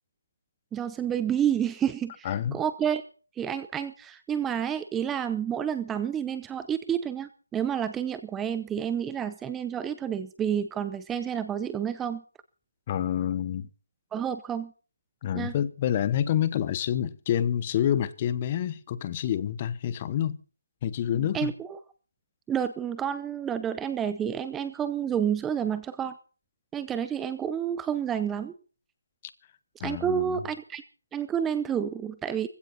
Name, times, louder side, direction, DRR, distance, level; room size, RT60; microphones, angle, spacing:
voice 1, 0.7-3.0 3.4-12.2 14.1-14.7 15.3-15.5 21.1-21.8 22.5-26.2 26.7-28.5 29.8-30.8 31.1-32.5, right 8 dB, 5° right, 0.8 m, -29 dB
voice 2, 2.2-2.6 12.9-13.7 15.2-20.4 20.8-21.5 29.8-30.4, left 10 dB, 20° left, 1.0 m, -28 dB
20.5 x 16.0 x 4.2 m
figure-of-eight pair, 165°, 0 cm